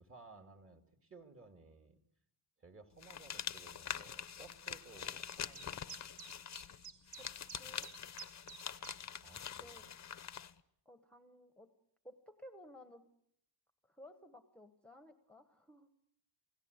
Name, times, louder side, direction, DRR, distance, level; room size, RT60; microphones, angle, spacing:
voice 1, 0.0-2.0 2.6-6.1 9.2-9.9, right 3 dB, 30° right, 6 dB, 2.3 m, -58 dB
sound 1, 3.0-10.5, left 8 dB, 35° left, 0.9 m, -45 dB
sound 2, 5.3-9.0, right 6 dB, 60° right, 2.7 m, -52 dB
voice 2, 7.6-7.9 9.6-9.9 10.8-11.7 12.0-13.1 13.8-15.9, equal, 5° left, 7 dB, 1.2 m, -57 dB
29.0 x 17.5 x 8.1 m, 0.75 s
wide cardioid pair, 165°, 46 cm